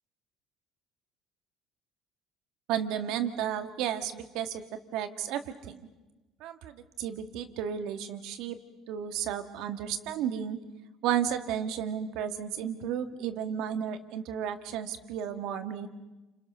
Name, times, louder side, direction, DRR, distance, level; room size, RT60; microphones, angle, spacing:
voice 1, 2.7-4.6 4.9-5.8 6.4-8.6 8.9-10.6 11.0-15.9, right 9 dB, 75° right, 8 dB, 1.9 m, -33 dB
29.0 x 27.5 x 6.4 m, 1.1 s
cardioid pair, 135°, 0 cm